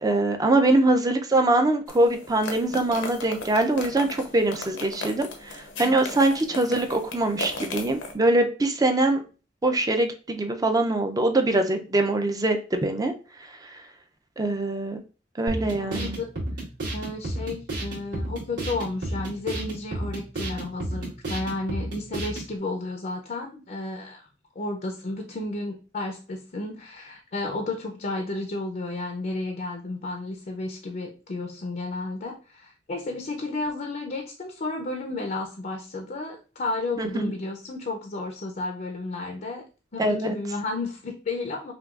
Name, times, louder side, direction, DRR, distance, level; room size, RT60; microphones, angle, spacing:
voice 1, 0.0-9.2 9.6-13.1 14.4-15.0 15.4-16.2 37.0-37.3 40.0-40.4, right 2 dB, 20° right, 5 dB, 0.5 m, -23 dB
sound 1, 1.9-8.1, left 2 dB, 75° left, 0.7 m, -37 dB
sound 2, 15.5-22.5, right 1 dB, 70° right, 2.0 m, -32 dB
voice 2, 15.7-16.3 16.9-24.3 24.6-39.6 39.9-41.7, left 2 dB, 45° left, 3 dB, 0.5 m, -32 dB
5.8 x 2.3 x 2.4 m, 0.35 s
head